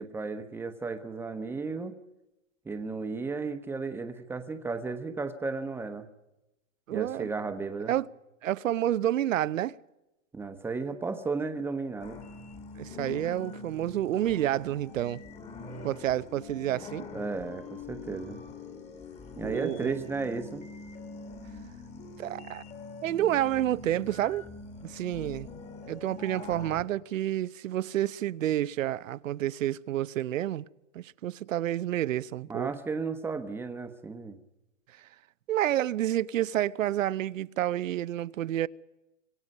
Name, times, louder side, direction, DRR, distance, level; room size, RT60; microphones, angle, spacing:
voice 1, 0.0-1.9 2.6-6.1 6.9-7.9 10.3-12.3 17.1-18.4 19.4-20.6 32.5-34.4, right 4 dB, 5° right, 1.0 m, -34 dB
voice 2, 6.9-7.3 7.9-8.1 8.4-9.8 12.8-15.2 15.8-17.1 19.4-20.1 22.2-22.6 23.0-24.4 24.8-25.5 25.9-30.7 30.9-32.7 35.5-38.7, right 12 dB, 80° right, 0.8 m, -29 dB
sound 1, 12.0-26.8, left 4 dB, 15° left, 1.7 m, -44 dB
29.0 x 25.5 x 5.5 m
hypercardioid pair, 150°, 38 cm